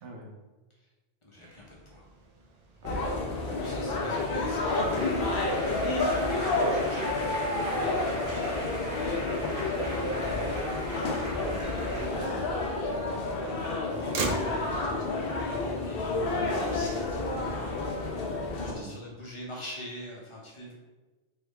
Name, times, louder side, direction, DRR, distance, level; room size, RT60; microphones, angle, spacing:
voice 1, 1.2-2.1 3.4-7.3 7.7-10.7 13.8-17.8 18.6-20.7, left 1 dB, 30° left, -4 dB, 0.9 m, -43 dB
Motor vehicle (road), 1.3-17.2, right 3 dB, 60° right, 0.4 m, -43 dB
sound 1, 2.8-18.7, left 2 dB, 60° left, 0.8 m, -30 dB
Applause, 4.1-12.1, equal, 15° right, 1.2 m, -37 dB
voice 2, 11.4-12.5 16.8-16.9 18.6-18.9, right 2 dB, 80° right, 1 dB, 1.0 m, -42 dB
3.6 x 3.2 x 3.3 m, 1.2 s
omnidirectional pair, 1.2 m